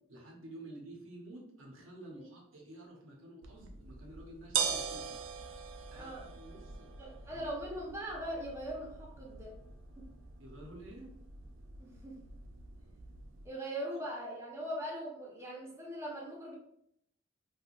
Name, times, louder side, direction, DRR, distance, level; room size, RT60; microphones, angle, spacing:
voice 1, 0.1-5.2 5.9-7.5 10.4-11.1, right 1 dB, 90° right, -1 dB, 0.9 m, -51 dB
sound 1, 3.4-13.5, right 6 dB, 75° right, 0.4 m, -42 dB
voice 2, 5.9-6.3 7.0-9.6 10.0-10.1 11.8-12.2 13.4-16.5, equal, 15° right, -3 dB, 0.7 m, -41 dB
3.4 x 2.2 x 2.4 m, 0.74 s
head